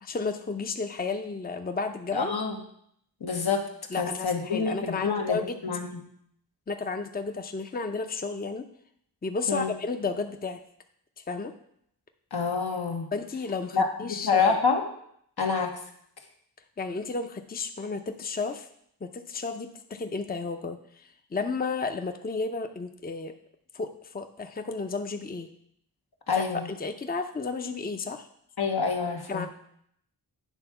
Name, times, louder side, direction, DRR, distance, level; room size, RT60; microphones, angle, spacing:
voice 1, 0.0-2.3 3.9-5.6 6.7-8.6 9.2-10.6 11.3-11.5 13.1-14.6 16.8-18.7 19.0-23.3 23.7-25.5 26.3-28.3 29.3-29.5, left 4 dB, 25° left, 6 dB, 0.6 m, -32 dB
voice 2, 2.1-2.6 3.2-3.6 4.0-6.1 9.5-9.7 12.3-13.0 13.7-14.8 15.4-15.7 26.3-26.7 28.6-29.5, left 5 dB, 75° left, 2 dB, 1.3 m, -27 dB
9.0 x 3.5 x 5.8 m, 0.69 s
cardioid pair, 50°, 38 cm